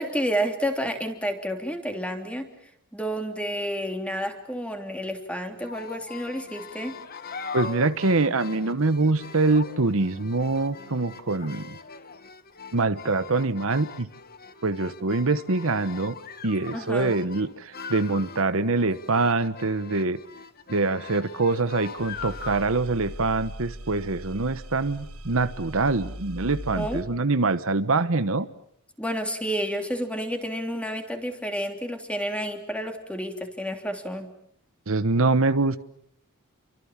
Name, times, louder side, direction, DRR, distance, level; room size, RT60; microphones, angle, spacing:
voice 1, 0.0-2.5 2.9-7.0 16.7-17.2 26.7-27.0 29.0-34.3, equal, 5° left, 5 dB, 3.2 m, -30 dB
sound 1, 5.6-22.6, left 5 dB, 45° left, 1.6 m, -41 dB
voice 2, 7.5-11.8 12.7-14.1 14.6-16.2 16.4-20.2 20.7-28.5 34.9-35.8, right 3 dB, 65° right, 12 dB, 1.1 m, -24 dB
sound 2, 22.0-27.0, right 1 dB, 80° right, 5.0 m, -40 dB
29.0 x 24.5 x 7.3 m, 0.69 s
head